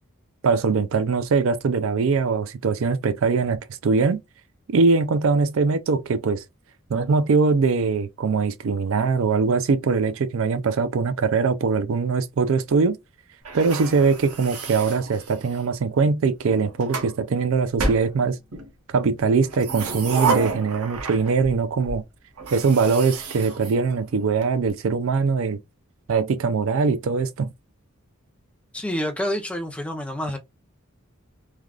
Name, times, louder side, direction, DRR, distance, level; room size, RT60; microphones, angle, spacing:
voice 1, 0.4-4.2 4.7-6.4 6.9-13.0 13.5-18.4 18.9-22.0 22.5-25.6 26.1-27.5, right 4 dB, 65° right, 0.4 m, -22 dB
sound 1, 13.5-15.7 16.5-17.1 17.8-18.7 19.4-21.6 21.9-22.0 22.4-24.4, right 4 dB, 90° right, 0.9 m, -30 dB
voice 2, 28.7-30.4, equal, 5° left, 0.5 m, -28 dB
3.3 x 2.4 x 2.3 m
head